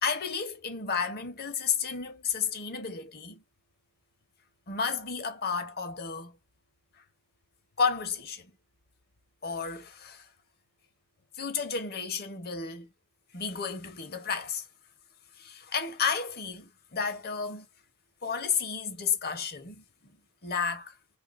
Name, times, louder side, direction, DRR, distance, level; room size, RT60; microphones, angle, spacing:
voice 1, 0.0-3.4 4.7-6.4 7.8-8.5 9.4-10.3 11.4-12.9 13.3-14.6 15.4-17.6 18.2-19.8 20.4-20.9, left 6 dB, 45° left, 0.9 m, -32 dB
2.8 x 2.5 x 4.0 m
head